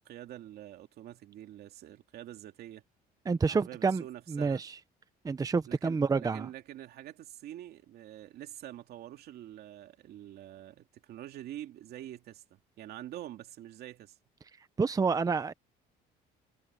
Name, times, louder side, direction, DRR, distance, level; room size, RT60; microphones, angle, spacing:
voice 1, 0.0-2.8 3.5-4.6 5.7-14.2, right 12 dB, 70° right, 2.5 m, -46 dB
voice 2, 3.3-4.0 4.3-4.8 5.2-6.5 14.8-15.5, right 4 dB, 20° right, 0.8 m, -28 dB
cardioid pair, 110°, 17 cm